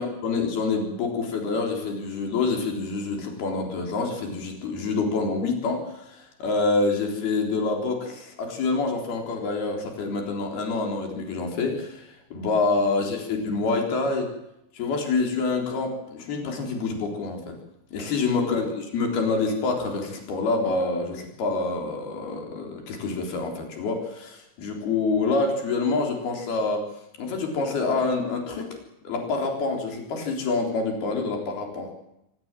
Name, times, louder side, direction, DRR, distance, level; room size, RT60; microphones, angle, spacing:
voice 1, 0.0-14.3 14.7-17.6 17.9-26.9 27.2-28.8 29.1-31.9, left 3 dB, 50° left, 3 dB, 5.4 m, -27 dB
25.5 x 18.5 x 7.6 m, 0.83 s
omnidirectional pair, 5.8 m